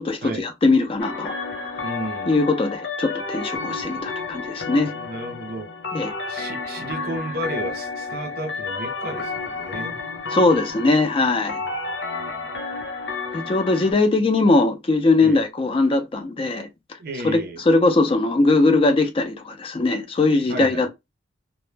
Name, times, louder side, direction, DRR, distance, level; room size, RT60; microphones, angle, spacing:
voice 1, 0.0-1.3 2.3-4.9 5.9-6.1 10.3-11.6 13.3-16.7 17.7-20.9, left 3 dB, 30° left, 0.4 m, -20 dB
sound 1, 1.0-13.9, left 4 dB, 80° left, 0.9 m, -31 dB
voice 2, 1.8-2.4 4.9-5.7 6.3-10.0 11.6-11.7 12.0-12.5 13.3-13.5 15.2-15.4 17.0-17.6 20.5-20.9, right 1 dB, 55° right, 0.5 m, -33 dB
2.1 x 2.0 x 3.1 m
head